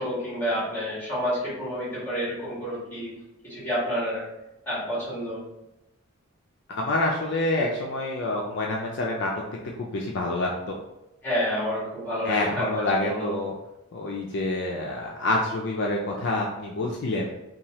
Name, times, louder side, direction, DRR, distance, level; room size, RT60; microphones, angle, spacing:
voice 1, 0.0-3.1 3.4-4.3 4.6-5.4 11.2-13.4, equal, 10° left, -8 dB, 1.5 m, -29 dB
voice 2, 6.7-9.4 9.8-10.8 12.2-13.5 13.9-17.3, left 2 dB, 55° left, -1 dB, 0.4 m, -27 dB
3.0 x 2.3 x 2.7 m, 0.93 s
head